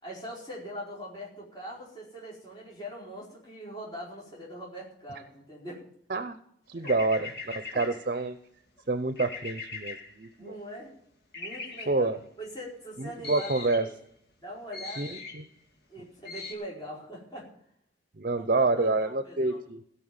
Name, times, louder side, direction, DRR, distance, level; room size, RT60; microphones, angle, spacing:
voice 1, 0.0-5.8 6.7-6.9 7.7-7.8 10.4-11.0 11.3-12.1 12.4-13.5 13.8-13.9 14.4-15.2 15.9-17.5 18.3-19.6, equal, 25° left, -5 dB, 4.8 m, -42 dB
voice 2, 6.7-8.4 8.9-10.6 11.9-12.2 13.0-13.9 15.0-15.4 18.2-19.8, right 3 dB, 50° right, 11 dB, 0.7 m, -28 dB
sound 1, 6.8-8.2 9.1-10.3 11.3-12.0 13.2-13.9 14.7-15.5 16.2-16.5, left 4 dB, 60° left, 2.6 m, -40 dB
16.5 x 5.7 x 8.8 m, 0.68 s
head